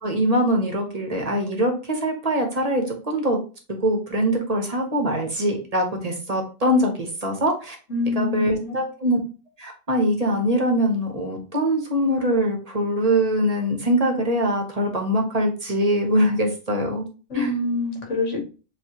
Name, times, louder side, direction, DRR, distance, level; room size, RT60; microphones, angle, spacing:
voice 1, 0.0-3.4 3.8-7.7 8.2-9.2 9.6-17.1 17.3-17.6, equal, 35° right, 2 dB, 1.0 m, -23 dB
voice 2, 7.9-8.8 17.3-18.4, left 2 dB, 65° left, 2 dB, 1.6 m, -26 dB
7.0 x 2.6 x 2.9 m, 0.36 s
omnidirectional pair, 1.3 m